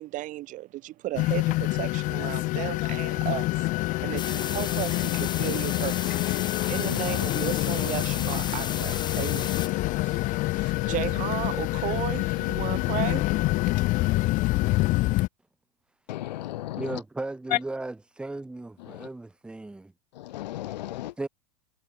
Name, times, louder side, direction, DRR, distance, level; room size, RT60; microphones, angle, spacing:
voice 1, 0.0-3.7 4.0-13.3, right 16 dB, 35° right, 1.1 m, -35 dB
sound 1, 1.1-15.3, left 20 dB, 40° left, 0.6 m, -26 dB
Tv radio static, 4.2-9.7, left 7 dB, 20° left, 2.1 m, -35 dB
sound 2, 5.1-5.3 6.2-12.3 12.8-13.3 13.8-13.9, right 16 dB, 75° right, 3.6 m, -53 dB
voice 2, 16.1-17.0 17.5-17.6 18.9-19.1 20.2-21.1, left 15 dB, 90° left, 0.4 m, -32 dB
voice 3, 16.8-19.9 21.2-21.3, right 2 dB, 5° right, 0.6 m, -36 dB
supercardioid pair, 120°, 21 cm